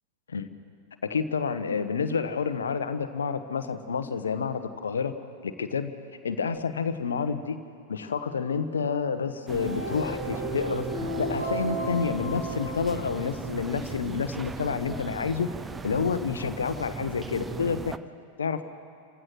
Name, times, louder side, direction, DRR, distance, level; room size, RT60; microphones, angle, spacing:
voice 1, 1.0-5.1 5.4-5.9 6.2-7.6 7.9-15.5 15.8-18.0 18.4-18.6, left 5 dB, 70° left, 10 dB, 1.2 m, -29 dB
sound 1, 9.4-13.7, right 1 dB, 85° right, 7.4 m, -34 dB
sound 2, 9.5-18.0, right 5 dB, 15° right, 0.6 m, -38 dB
28.5 x 15.5 x 6.1 m, 2.3 s
figure-of-eight pair, 90°, 0 cm